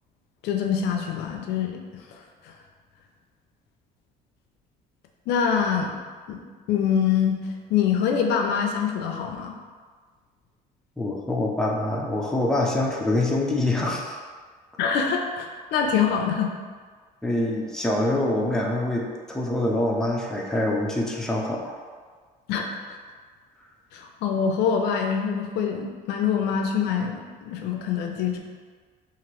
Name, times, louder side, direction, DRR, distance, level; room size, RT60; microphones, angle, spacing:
voice 1, 0.4-2.0 2.4-2.5 5.3-5.9 6.3-6.4 6.7-7.4 7.7-9.5 14.8-16.5 22.5-23.0 23.9-28.4, left 7 dB, 80° left, 2 dB, 0.4 m, -25 dB
voice 2, 11.0-14.2 17.2-21.7, left 1 dB, 5° left, -2 dB, 0.4 m, -25 dB
2.9 x 2.5 x 3.0 m, 1.5 s
cardioid pair, 110°, 17 cm